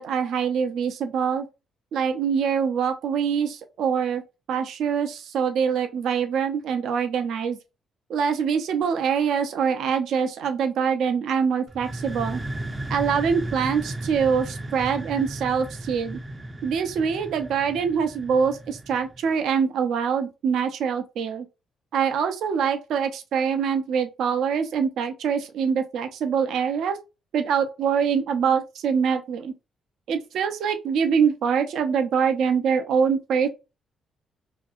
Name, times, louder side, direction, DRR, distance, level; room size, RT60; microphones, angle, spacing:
voice 1, 0.0-1.4 1.9-4.2 4.5-7.6 8.1-12.4 12.9-16.2 16.6-21.5 21.9-27.0 27.3-29.5 30.1-33.5, right 6 dB, 75° right, 0.5 m, -24 dB
sound 1, 11.7-19.3, right 1 dB, 20° right, 0.4 m, -35 dB
2.6 x 2.6 x 2.3 m
cardioid pair, 90°, 0 cm